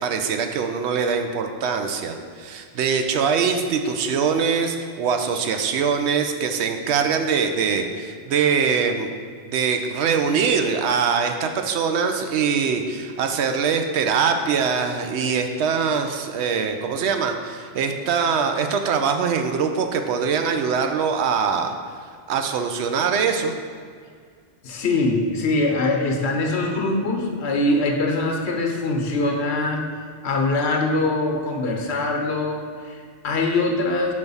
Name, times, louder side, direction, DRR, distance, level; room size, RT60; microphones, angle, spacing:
voice 1, 0.0-9.1 9.5-21.7 22.3-23.6, right 6 dB, 90° right, 6 dB, 0.9 m, -23 dB
voice 2, 24.6-29.8 30.2-34.1, left 2 dB, 80° left, 2 dB, 1.1 m, -23 dB
5.4 x 4.6 x 5.4 m, 2.1 s
omnidirectional pair, 1.1 m